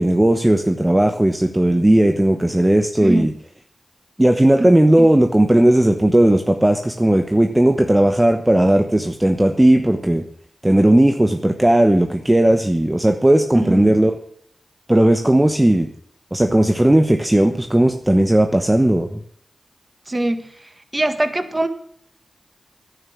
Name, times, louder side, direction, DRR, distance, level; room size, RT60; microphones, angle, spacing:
voice 1, 0.0-3.3 4.2-10.2 10.6-14.2 14.9-15.9 16.3-19.2, right 1 dB, 15° right, 6 dB, 1.1 m, -16 dB
voice 2, 3.0-3.3 4.6-4.7 5.0-5.1 13.5-13.9 20.1-20.5 20.9-21.7, right 1 dB, 30° right, 9 dB, 1.6 m, -22 dB
10.5 x 9.5 x 7.2 m, 0.67 s
cardioid pair, 50°, 0 cm